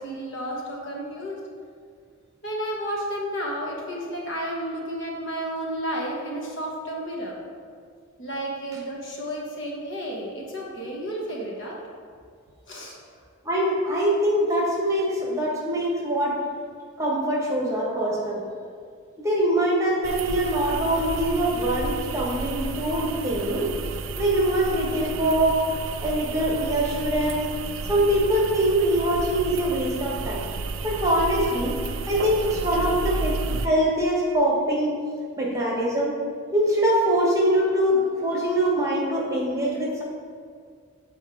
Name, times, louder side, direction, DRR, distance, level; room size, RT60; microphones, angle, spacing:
voice 1, 0.0-1.5 2.4-7.4 8.2-11.8 12.7-13.0, equal, 60° left, -2 dB, 1.3 m, -32 dB
voice 2, 13.4-16.4 17.0-18.4 19.2-23.7 24.2-25.6 26.0-27.4 27.9-30.4 30.8-31.7 32.1-35.0 35.4-36.2 36.5-40.0, right 1 dB, 15° right, -4 dB, 1.4 m, -23 dB
sound 1, 20.0-33.7, right 4 dB, 70° right, 0.4 m, -32 dB
8.0 x 4.5 x 4.7 m, 2.1 s
head